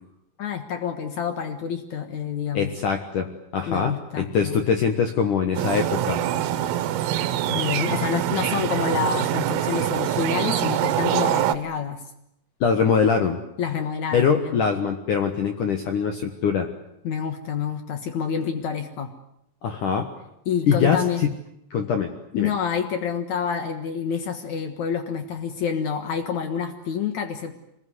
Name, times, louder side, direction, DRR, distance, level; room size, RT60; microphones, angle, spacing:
voice 1, 0.4-2.7 3.7-4.6 7.5-12.0 13.6-14.6 17.0-19.1 20.4-21.2 22.3-27.5, left 7 dB, 85° left, 8 dB, 1.6 m, -28 dB
voice 2, 2.5-6.2 12.6-13.4 14.1-16.7 19.6-20.1 20.7-21.3 21.7-22.5, left 6 dB, 65° left, 6 dB, 2.0 m, -23 dB
sound 1, 5.6-11.6, right 12 dB, 90° right, 3.9 m, -24 dB
25.0 x 21.0 x 9.7 m, 0.79 s
omnidirectional pair, 5.8 m